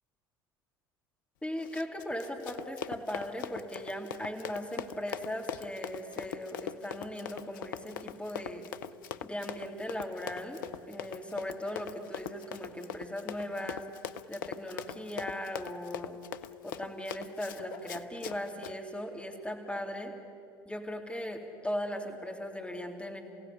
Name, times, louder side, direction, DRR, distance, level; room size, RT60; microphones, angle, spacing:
voice 1, 1.4-8.7 9.2-10.6 10.9-13.8 14.3-16.2 16.6-20.1 20.6-23.2, left 1 dB, 10° left, 2 dB, 3.3 m, -38 dB
Run, 1.6-18.8, left 9 dB, 65° left, 0.6 m, -42 dB
27.5 x 16.5 x 9.8 m, 2.6 s
figure-of-eight pair, 65°, 12 cm